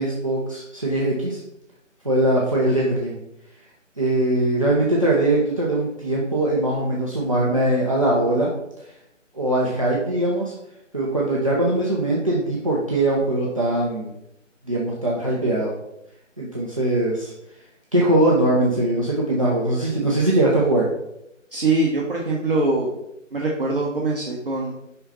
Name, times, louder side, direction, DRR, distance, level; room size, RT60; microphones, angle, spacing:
voice 1, 0.0-1.4 2.0-3.2 4.0-8.5 9.3-10.5 10.9-14.1 14.7-15.7 16.4-17.3 17.9-20.9, right 1 dB, 25° right, -5 dB, 0.8 m, -21 dB
voice 2, 21.5-22.9 23.3-24.7, right 2 dB, 45° right, -3 dB, 1.1 m, -23 dB
5.6 x 5.4 x 4.2 m, 0.83 s
figure-of-eight pair, 155°, 38 cm